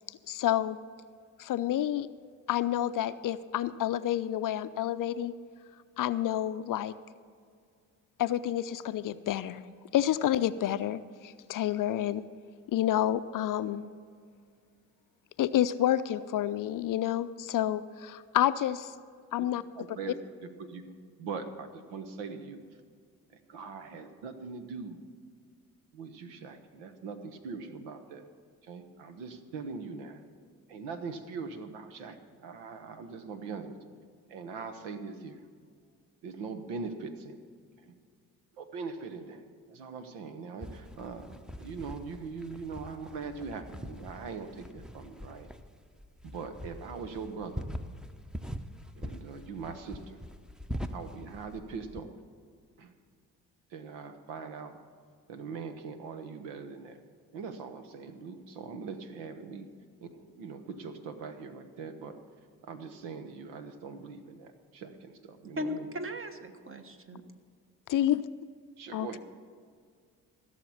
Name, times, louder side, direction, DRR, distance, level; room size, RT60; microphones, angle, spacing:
voice 1, 0.1-0.8 1.4-2.1 2.5-5.3 6.0-6.9 8.2-9.6 9.9-12.2 12.7-13.8 15.4-18.9 19.3-19.6 67.9-68.2 68.9-69.2, left 12 dB, 50° left, 14 dB, 0.6 m, -29 dB
voice 2, 19.7-20.2 20.4-22.6 23.3-25.0 25.9-28.2 28.6-30.2 30.7-33.8 34.3-35.4 36.2-37.4 37.8-38.0 38.6-45.5 46.2-47.7 48.9-50.2 50.9-52.2 52.8-52.9 53.7-54.8 55.3-57.0 57.3-59.7 60.0-62.2 62.6-65.9 66.6-66.8 68.8-69.2, right 5 dB, 75° right, 9 dB, 1.1 m, -41 dB
sound 1, 40.6-52.0, equal, ahead, 0.8 m, -43 dB
voice 3, 65.6-67.2, left 1 dB, 30° right, 7 dB, 1.4 m, -37 dB
16.0 x 6.8 x 7.2 m, 2.1 s
hypercardioid pair, 45°, 43 cm